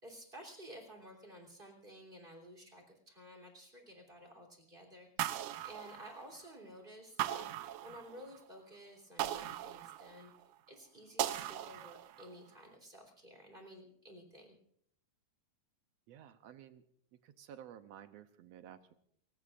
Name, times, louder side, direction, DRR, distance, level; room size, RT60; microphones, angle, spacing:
voice 1, 0.0-10.3 10.7-14.6, equal, 15° right, 2 dB, 3.3 m, -53 dB
sound 1, 5.2-6.5 7.2-8.4 9.2-10.4 11.2-12.4, right 12 dB, 90° right, 2.2 m, -39 dB
voice 2, 16.1-16.8 17.2-18.9, right 10 dB, 75° right, 9 dB, 1.7 m, -53 dB
30.0 x 16.5 x 2.5 m, 0.68 s
omnidirectional pair, 3.4 m